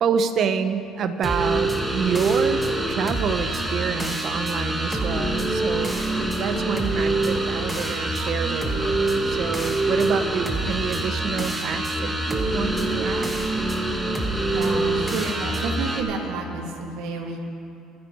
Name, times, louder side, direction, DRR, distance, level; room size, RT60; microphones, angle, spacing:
voice 1, 0.0-2.6 2.9-6.0 6.3-13.3, right 7 dB, 55° right, 9 dB, 1.1 m, -27 dB
sound 1, 1.2-16.0, right 2 dB, 10° right, 1.9 m, -25 dB
voice 2, 14.5-17.4, right 4 dB, 75° right, 0 dB, 2.5 m, -30 dB
26.5 x 9.6 x 4.8 m, 2.6 s
supercardioid pair, 100°, 0 cm